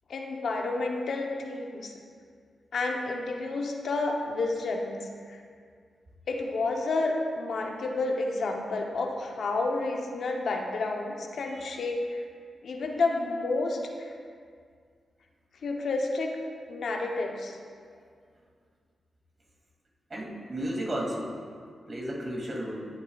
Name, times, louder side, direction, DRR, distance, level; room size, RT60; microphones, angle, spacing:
voice 1, 0.1-1.9 2.7-5.0 5.3-5.4 6.3-12.2 12.6-14.1 15.6-16.3 16.7-17.6, left 3 dB, 75° left, 2 dB, 0.8 m, -30 dB
voice 2, 20.1-21.3 21.9-22.9, equal, 45° right, -2 dB, 2.3 m, -33 dB
13.0 x 7.8 x 2.4 m, 2.1 s
supercardioid pair, 50°, 0 cm